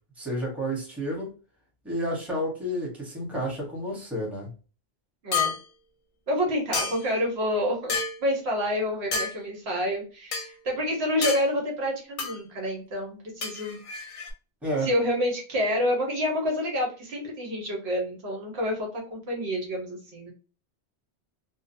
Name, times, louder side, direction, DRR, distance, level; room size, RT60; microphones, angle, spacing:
voice 1, 0.2-1.3 1.8-4.5 14.6-14.9, equal, ahead, -3 dB, 0.9 m, -30 dB
sound 1, 5.3-5.6 6.7-7.2 7.9-8.2 9.1-9.3 10.3-10.5 11.2-11.4 12.2-12.4 13.4-14.3, left 5 dB, 55° left, 0.7 m, -29 dB
voice 2, 6.3-7.9 8.2-13.8 14.8-20.3, left 1 dB, 70° right, 0 dB, 1.1 m, -28 dB
2.8 x 2.1 x 2.5 m, 0.35 s
omnidirectional pair, 1.1 m